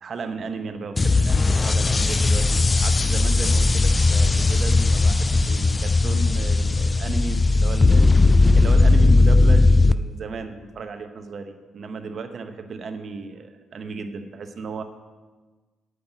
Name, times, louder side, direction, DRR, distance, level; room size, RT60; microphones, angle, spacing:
voice 1, 0.0-14.8, right 4 dB, 50° right, 7 dB, 1.0 m, -34 dB
sound 1, 1.0-9.9, left 3 dB, 25° left, 0.3 m, -17 dB
8.4 x 5.7 x 8.0 m, 1.3 s
cardioid pair, 90°, 0 cm